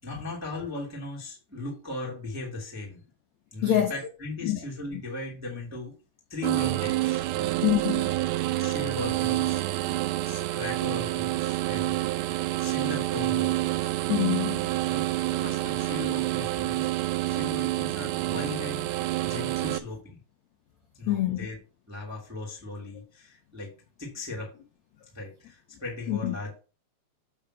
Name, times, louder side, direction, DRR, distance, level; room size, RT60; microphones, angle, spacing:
voice 1, 0.0-3.0 3.5-6.0 6.3-7.5 8.6-9.6 10.2-12.0 12.6-14.0 14.9-18.9 19.2-20.2 20.9-21.6 21.9-23.7 24.0-24.5 25.1-26.6, left 2 dB, 5° right, 1.8 m, -38 dB
voice 2, 3.6-3.9 4.4-4.6 7.6-8.1 14.1-14.7 21.1-21.5 26.1-26.3, left 12 dB, 80° left, 1.6 m, -25 dB
sound 1, 6.4-19.8, right 16 dB, 80° right, 2.3 m, -28 dB
8.7 x 3.6 x 6.2 m
omnidirectional pair, 4.5 m